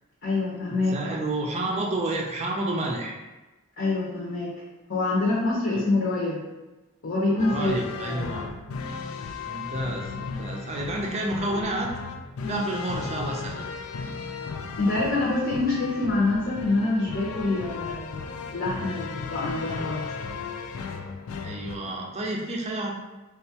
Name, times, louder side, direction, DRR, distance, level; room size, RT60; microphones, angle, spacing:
voice 1, 0.2-1.0 3.8-4.5 4.9-6.4 7.0-7.8 8.1-8.4 12.4-12.6 14.8-18.2 18.5-20.1, left 2 dB, 55° left, -7 dB, 0.8 m, -26 dB
voice 2, 0.9-3.1 7.5-8.5 9.5-11.9 12.4-13.7 21.4-23.0, right 2 dB, 30° right, -1 dB, 0.5 m, -30 dB
sound 1, 7.4-21.7, left 5 dB, 80° left, 0.4 m, -35 dB
4.2 x 2.3 x 2.8 m, 1.1 s
head